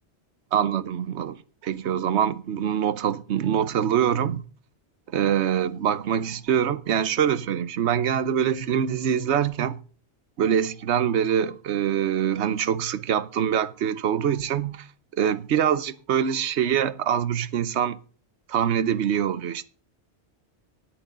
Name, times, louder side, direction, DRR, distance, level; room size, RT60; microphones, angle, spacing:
voice 1, 0.5-4.4 5.1-9.8 10.4-14.9 15.1-18.0 18.5-19.7, right 9 dB, 80° right, 1.1 m, -24 dB
13.0 x 11.0 x 3.8 m
omnidirectional pair, 1.2 m